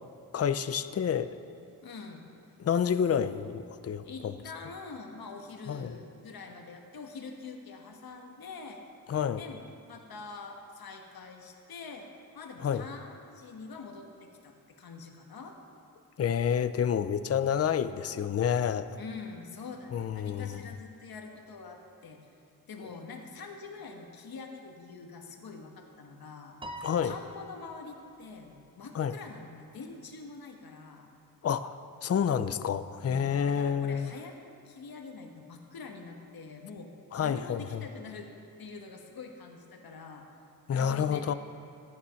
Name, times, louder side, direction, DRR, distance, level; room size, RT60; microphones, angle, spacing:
voice 1, 0.3-1.4 2.6-4.3 5.7-5.9 9.1-9.4 12.6-12.9 16.2-18.9 19.9-20.6 26.8-27.1 28.9-29.1 31.4-34.1 37.1-37.8 40.7-41.3, left 8 dB, 40° left, 13 dB, 0.5 m, -29 dB
voice 2, 1.8-2.3 4.0-8.8 9.4-9.6 9.9-15.6 19.0-22.3 22.7-26.6 27.0-31.1 33.0-36.9 37.2-38.3 38.6-40.3 40.7-41.3, left 4 dB, 75° left, 3 dB, 1.3 m, -45 dB
Piano, 26.6-28.2, equal, 15° right, 0.7 m, -45 dB
14.5 x 9.7 x 5.7 m, 2.6 s
wide cardioid pair, 130°, 36 cm